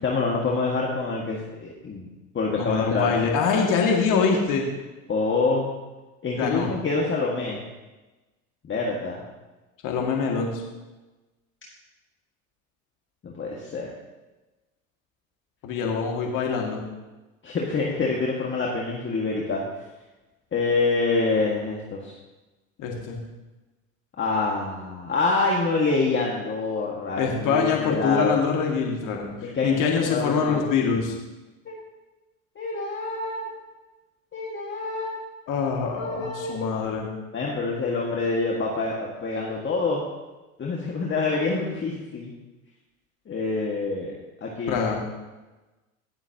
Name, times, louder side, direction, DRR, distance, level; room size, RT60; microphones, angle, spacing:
voice 1, 0.0-2.1 2.3-3.1 5.1-5.7 6.2-7.6 8.6-9.2 13.2-13.9 17.4-19.6 20.5-22.1 24.2-28.4 29.4-30.6 31.6-31.7 32.5-33.4 34.3-35.1 35.8-36.7 37.3-40.0 40.6-42.3 43.3-44.1 44.4-44.8, left 3 dB, 30° left, -2 dB, 1.7 m, -26 dB
voice 2, 2.6-4.7 6.4-6.7 9.8-10.6 15.6-16.8 22.8-23.2 27.2-31.2 35.5-37.1 44.7-45.0, left 5 dB, 50° left, 0 dB, 2.0 m, -24 dB
18.0 x 7.0 x 2.8 m, 1.1 s
hypercardioid pair, 80°, 42 cm